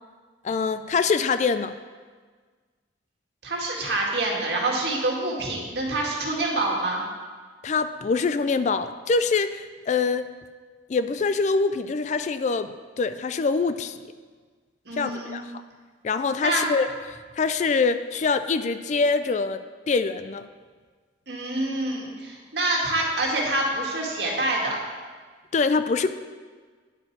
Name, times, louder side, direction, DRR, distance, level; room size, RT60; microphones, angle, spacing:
voice 1, 0.4-1.7 7.6-10.3 10.9-14.0 15.0-15.5 16.0-19.6 19.9-20.5 25.5-26.1, left 4 dB, 40° left, 11 dB, 0.3 m, -24 dB
voice 2, 3.4-7.0 14.9-15.4 16.4-16.7 21.3-24.8, right 2 dB, 65° right, -2 dB, 1.9 m, -26 dB
9.7 x 5.3 x 5.9 m, 1.5 s
head